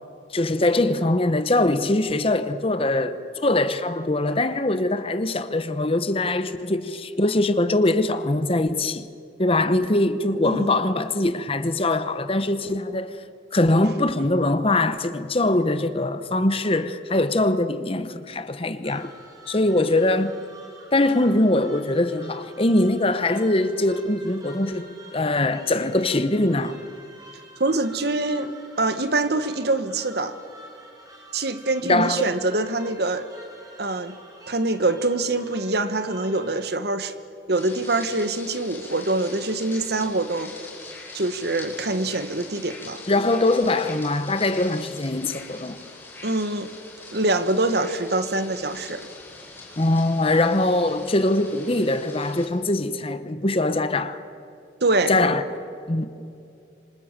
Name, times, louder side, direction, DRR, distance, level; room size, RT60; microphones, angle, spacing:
voice 1, 0.3-9.1 9.4-13.2 13.5-19.1 19.5-20.3 20.9-26.8 31.8-32.3 43.1-45.8 49.8-54.2 55.1-55.4 55.9-56.1, left 2 dB, 30° left, 1.0 m, -22 dB
voice 2, 10.4-10.8 27.6-30.3 31.3-33.3 33.8-34.2 34.5-37.1 37.5-40.5 41.1-43.0 46.2-46.7 47.1-49.1 54.8-55.1, right 2 dB, 60° right, 1.4 m, -24 dB
sound 1, 18.8-36.6, right 1 dB, 20° right, 4.5 m, -48 dB
sound 2, 37.6-52.5, left 3 dB, 10° left, 4.6 m, -42 dB
26.5 x 25.5 x 7.5 m
head